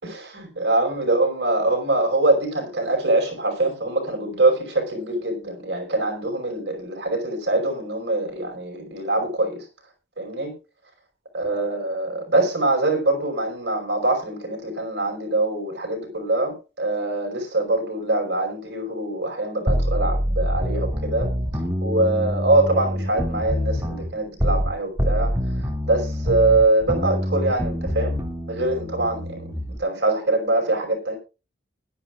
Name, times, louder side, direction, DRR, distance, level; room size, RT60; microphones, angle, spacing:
voice 1, 0.0-9.6 10.2-10.5 11.3-21.3 21.8-25.3 25.8-28.2 28.5-29.5 29.8-31.2, right 2 dB, 60° right, 2 dB, 5.4 m, -23 dB
sound 1, 19.7-24.7 25.0-29.8, equal, 15° right, 2.5 m, -25 dB
20.0 x 11.0 x 2.5 m, 0.31 s
head